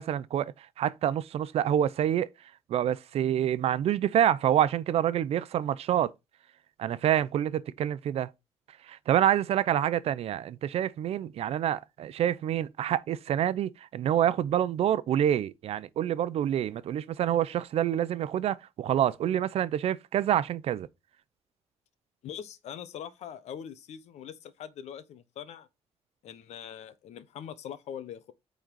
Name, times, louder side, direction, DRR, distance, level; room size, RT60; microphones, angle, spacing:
voice 1, 0.0-2.3 2.7-6.1 6.8-8.3 8.9-20.9, right 10 dB, 65° right, 0.7 m, -27 dB
voice 2, 22.2-25.7 26.2-28.3, left 9 dB, 80° left, 1.0 m, -42 dB
9.0 x 4.1 x 4.6 m
cardioid pair, 155°, 11 cm